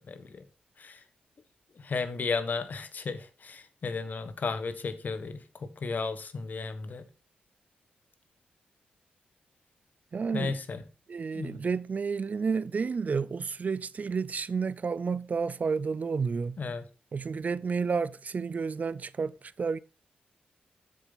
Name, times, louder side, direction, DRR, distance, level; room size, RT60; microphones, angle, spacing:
voice 1, 1.8-7.0 10.3-10.8 11.3-11.6 16.6-16.8, left 4 dB, 55° left, 1.3 m, -34 dB
voice 2, 10.1-10.6 11.1-16.6 17.1-19.8, right 5 dB, 50° right, 0.5 m, -31 dB
7.5 x 7.5 x 4.0 m
cardioid pair, 60°, 3 cm